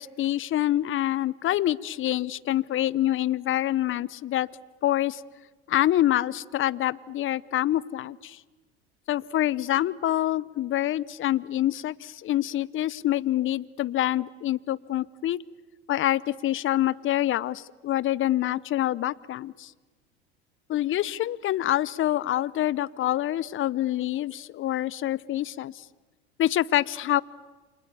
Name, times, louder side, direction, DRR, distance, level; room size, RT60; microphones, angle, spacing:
voice 1, 0.0-4.5 4.8-5.2 5.7-8.4 9.1-15.4 15.9-19.7 20.7-25.8 26.4-27.2, left 13 dB, 40° left, 21 dB, 0.8 m, -26 dB
29.5 x 27.0 x 7.0 m, 1.3 s
hypercardioid pair, 80°, 33 cm